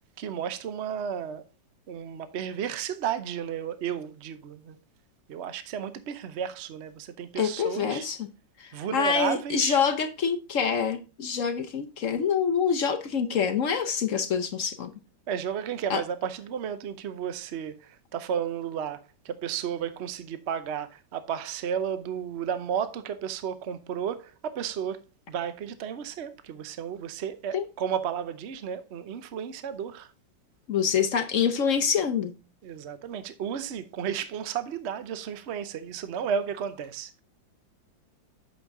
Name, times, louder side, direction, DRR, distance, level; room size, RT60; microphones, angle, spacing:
voice 1, 0.2-1.4 1.9-4.8 5.3-8.1 8.7-9.8 15.3-25.0 25.3-30.1 32.6-37.2, right 8 dB, 60° right, 0.7 m, -33 dB
voice 2, 7.4-8.3 8.6-14.9 15.9-16.0 27.5-27.6 30.7-32.3, left 7 dB, 60° left, 0.9 m, -26 dB
8.4 x 6.4 x 3.5 m
omnidirectional pair, 2.1 m